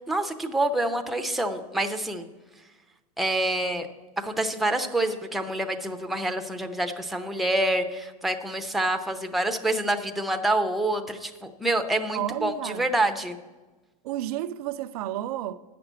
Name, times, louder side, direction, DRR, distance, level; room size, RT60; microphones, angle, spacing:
voice 1, 0.1-2.3 3.2-3.9 4.2-13.4, right 1 dB, ahead, 0.6 m, -27 dB
voice 2, 12.1-12.9 14.0-15.6, right 13 dB, 75° right, 0.5 m, -31 dB
8.7 x 6.0 x 8.0 m
supercardioid pair, 125°, 20 cm